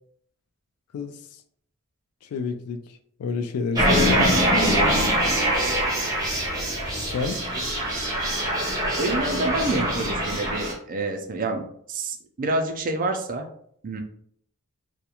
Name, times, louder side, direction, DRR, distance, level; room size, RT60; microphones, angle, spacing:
voice 1, 2.2-4.3 7.1-7.4, left 4 dB, 80° left, 11 dB, 0.3 m, -29 dB
sound 1, 3.7-10.7, equal, 15° right, 0.7 m, -23 dB
voice 2, 9.0-13.4 13.8-14.0, right 2 dB, 40° right, 4 dB, 0.4 m, -28 dB
2.3 x 2.1 x 2.8 m, 0.64 s
head